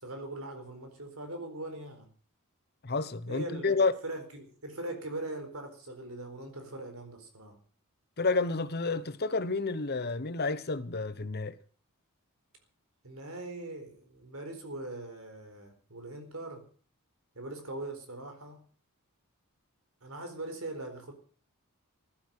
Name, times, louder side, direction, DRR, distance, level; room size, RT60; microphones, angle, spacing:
voice 1, 0.0-2.1 3.3-7.6 13.0-16.6 17.3-18.6 20.0-21.1, right 2 dB, 70° right, 4.4 m, -41 dB
voice 2, 2.8-4.0 8.2-11.6, left 3 dB, 45° left, 1.0 m, -30 dB
15.5 x 12.0 x 6.5 m
head